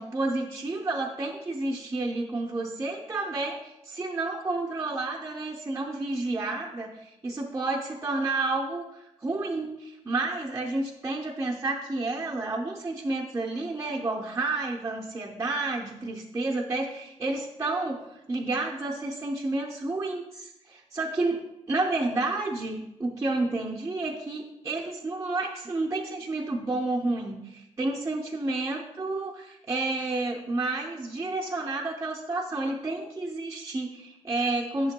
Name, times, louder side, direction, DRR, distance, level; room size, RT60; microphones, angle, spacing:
voice 1, 0.0-34.9, right 2 dB, 25° right, -3 dB, 0.6 m, -30 dB
10.5 x 6.2 x 2.2 m, 0.89 s
wide cardioid pair, 125°, 12 cm